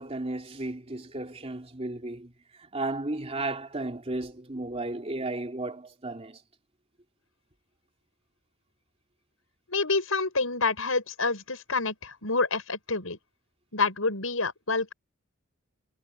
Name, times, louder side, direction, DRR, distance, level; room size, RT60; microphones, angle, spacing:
voice 1, 0.0-6.4, right 2 dB, 30° right, 3.0 m, -34 dB
voice 2, 9.7-13.2 13.7-14.9, left 3 dB, 80° left, 6.2 m, -28 dB
head